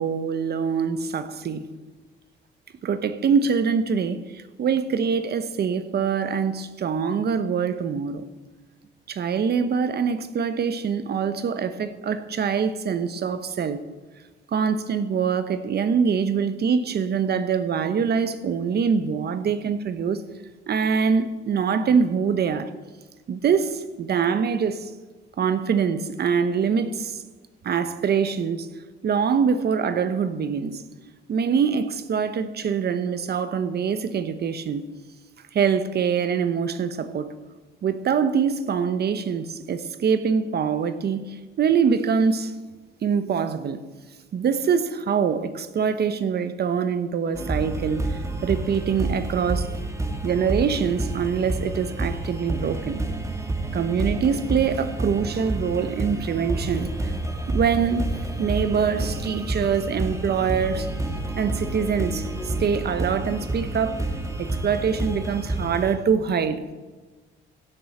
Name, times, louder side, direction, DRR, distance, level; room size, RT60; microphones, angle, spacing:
voice 1, 0.0-1.7 2.8-8.2 9.1-13.8 14.5-20.3 20.7-22.7 23.3-24.9 25.4-27.2 27.6-28.7 29.0-30.8 31.3-34.9 35.5-37.3 37.8-42.5 43.0-43.8 44.3-49.7 50.2-53.1 53.7-57.1 57.5-60.9 61.4-64.0 64.4-66.6, right 6 dB, 55° right, 0.9 m, -24 dB
sound 1, 47.3-65.9, right 2 dB, 15° right, 1.9 m, -29 dB
16.0 x 7.2 x 7.7 m
cardioid pair, 90°, 20 cm